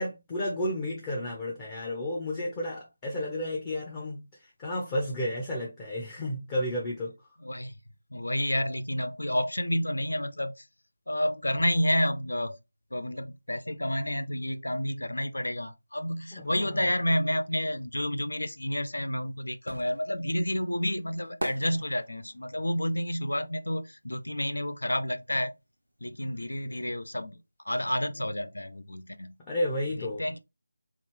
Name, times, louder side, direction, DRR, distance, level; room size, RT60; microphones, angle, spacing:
voice 1, 0.0-7.1 16.3-16.9 29.5-30.2, left 1 dB, 15° left, 0.6 m, -32 dB
voice 2, 7.4-7.7 8.1-10.6 11.1-12.6 12.9-25.5 26.0-27.4 27.6-29.4 30.0-30.4, equal, 70° left, 0.5 m, -30 dB
sound 1, 18.8-24.6 24.9-26.5 26.8-26.9, right 1 dB, 75° right, 0.5 m, -42 dB
3.0 x 2.5 x 3.3 m
figure-of-eight pair, 160°, 0 cm